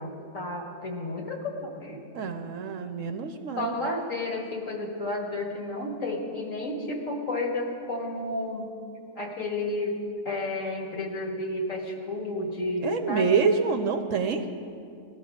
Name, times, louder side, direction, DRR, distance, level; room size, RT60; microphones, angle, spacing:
voice 1, 0.0-2.2 3.6-8.7 9.2-10.0 10.3-13.5, left 2 dB, 55° left, 1 dB, 2.0 m, -32 dB
voice 2, 2.1-3.7 12.8-14.4, right 5 dB, 65° right, 7 dB, 1.0 m, -26 dB
17.5 x 12.5 x 5.1 m, 2.5 s
omnidirectional pair, 1.6 m